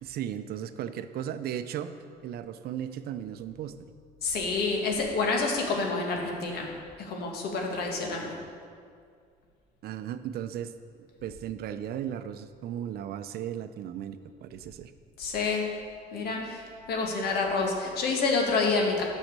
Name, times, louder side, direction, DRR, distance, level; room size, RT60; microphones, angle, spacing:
voice 1, 0.0-1.9 2.2-3.9 9.8-10.7 11.2-14.9, right 10 dB, 65° right, 11 dB, 0.6 m, -36 dB
voice 2, 4.2-6.7 7.0-8.4 15.2-15.7 16.1-19.0, left 4 dB, 70° left, 1 dB, 1.9 m, -28 dB
9.2 x 6.4 x 6.6 m, 2.2 s
cardioid pair, 110°, 17 cm